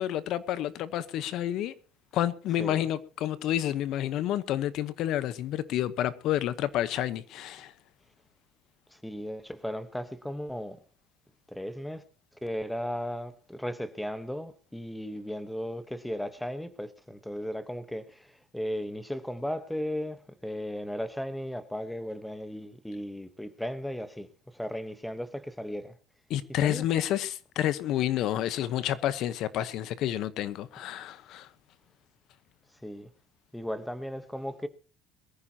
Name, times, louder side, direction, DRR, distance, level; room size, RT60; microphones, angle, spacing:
voice 1, 0.0-1.7 2.1-7.7 26.3-31.5, left 12 dB, 55° left, 1.0 m, -29 dB
voice 2, 8.9-10.8 11.5-12.0 12.4-26.0 26.5-26.9 32.8-33.1 33.5-34.7, equal, 5° left, 1.0 m, -36 dB
22.5 x 14.5 x 2.8 m
cardioid pair, 160°, 0 cm